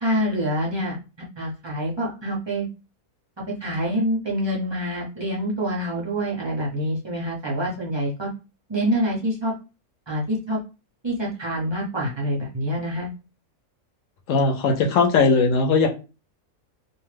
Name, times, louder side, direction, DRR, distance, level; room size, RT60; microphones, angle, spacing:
voice 1, 0.0-1.0 1.4-2.7 3.6-8.3 8.7-9.5 10.1-10.6 11.0-13.1, equal, 35° right, -3 dB, 0.4 m, -26 dB
voice 2, 14.3-15.9, left 4 dB, 65° left, 3 dB, 0.9 m, -19 dB
2.6 x 2.3 x 3.2 m, 0.31 s
omnidirectional pair, 1.7 m